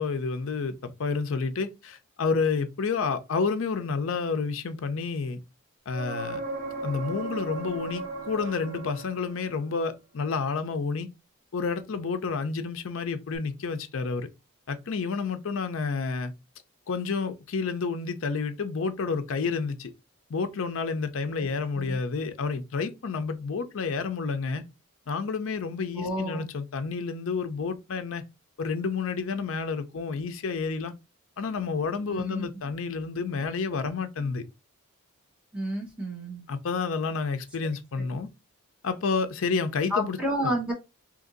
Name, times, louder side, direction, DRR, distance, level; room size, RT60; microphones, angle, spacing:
voice 1, 0.0-5.4 5.9-6.4 6.8-11.1 11.5-14.3 14.7-16.3 16.9-19.9 20.3-24.6 25.1-28.2 28.6-30.9 31.4-34.4 36.5-38.3 38.8-40.2 40.4-40.5, left 4 dB, 60° left, 0.5 m, -30 dB
sound 1, 5.9-9.7 13.3-13.4, right 2 dB, 45° right, 1.0 m, -36 dB
voice 2, 25.9-26.5 32.1-32.5 35.5-36.4 39.9-40.7, equal, 5° right, 0.9 m, -30 dB
2.8 x 2.6 x 3.8 m
head